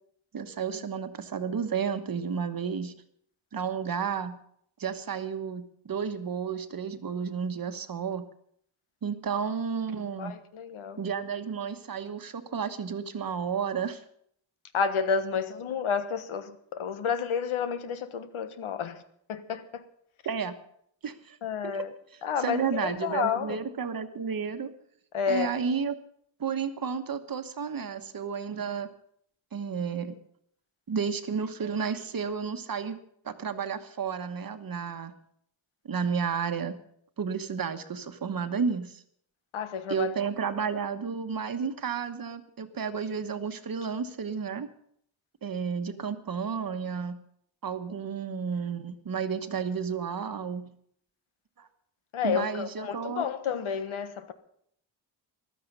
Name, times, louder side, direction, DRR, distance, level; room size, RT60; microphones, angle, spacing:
voice 1, 0.3-2.9 3.5-4.4 4.8-8.3 9.0-10.4 10.9-14.0 20.2-20.5 21.0-21.4 21.6-21.8 22.4-24.7 25.3-26.0 26.4-28.9 29.5-30.2 30.9-33.0 33.2-35.1 35.8-36.8 37.2-39.0 39.9-44.7 45.4-47.2 47.6-50.7 51.6-51.7 52.2-53.2, right 6 dB, 45° right, 9 dB, 1.2 m, -32 dB
voice 2, 10.2-11.0 14.7-19.0 19.3-19.8 21.4-21.9 22.2-23.6 25.1-25.5 39.5-40.1 52.1-54.3, left 6 dB, 80° left, 10 dB, 1.4 m, -30 dB
15.0 x 12.5 x 5.4 m, 0.68 s
wide cardioid pair, 120°, 48 cm